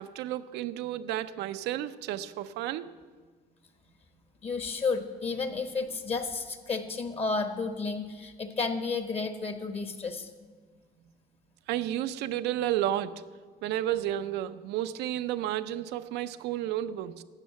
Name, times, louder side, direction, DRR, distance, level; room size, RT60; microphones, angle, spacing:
voice 1, 0.0-2.9 11.7-13.2 13.6-17.2, right 12 dB, 85° right, 0.6 m, -32 dB
voice 2, 4.4-10.3, left 4 dB, 35° left, 1.2 m, -32 dB
12.0 x 7.1 x 8.3 m
cardioid pair, 110°, 17 cm